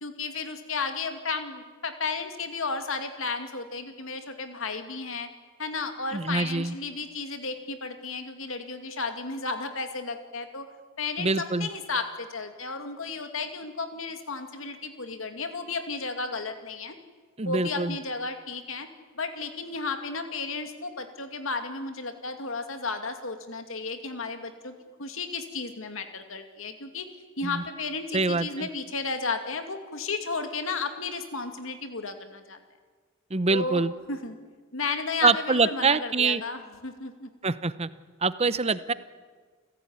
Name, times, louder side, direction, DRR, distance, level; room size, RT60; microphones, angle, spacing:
voice 1, 0.0-5.3 5.6-10.7 11.0-17.0 17.4-18.9 19.1-27.1 27.4-32.6 33.5-33.8 34.1-34.4 34.7-37.3, left 4 dB, 70° left, 7 dB, 2.5 m, -33 dB
voice 2, 6.1-6.8 11.2-11.7 17.4-18.0 27.4-27.6 28.1-28.7 33.3-33.9 35.2-36.4 37.4-37.9 38.2-38.9, right 4 dB, 30° right, 15 dB, 0.8 m, -25 dB
28.5 x 16.0 x 9.7 m, 1.5 s
head